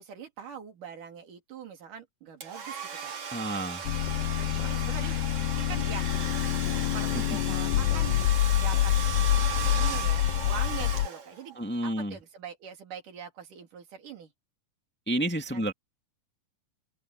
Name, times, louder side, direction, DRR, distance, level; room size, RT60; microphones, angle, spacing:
voice 1, 0.0-3.1 4.4-6.2 6.9-8.9 9.7-14.3 15.5-15.7, right 7 dB, 85° right, 4.5 m, -43 dB
Domestic sounds home sounds, 2.4-11.6, right 7 dB, 60° right, 4.4 m, -36 dB
voice 2, 3.3-3.8 7.1-7.2 7.5-7.6 11.5-12.2 15.1-15.7, right 1 dB, 5° left, 1.5 m, -30 dB
sound 1, 3.8-11.1, left 14 dB, 85° left, 2.2 m, -27 dB
open air
omnidirectional pair, 3.6 m